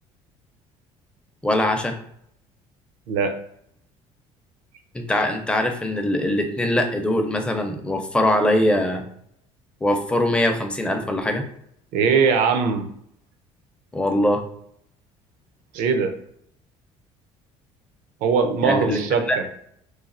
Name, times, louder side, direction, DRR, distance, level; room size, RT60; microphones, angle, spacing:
voice 1, 1.4-1.9 4.9-9.0 9.8-11.4 13.9-14.4 18.6-19.0 19.3-19.5, left 1 dB, 10° left, 4 dB, 0.5 m, -22 dB
voice 2, 11.9-12.9 15.7-16.1 18.2-19.4, right 5 dB, 75° right, 6 dB, 0.5 m, -20 dB
3.1 x 2.3 x 2.5 m, 0.72 s
supercardioid pair, 95°, 13 cm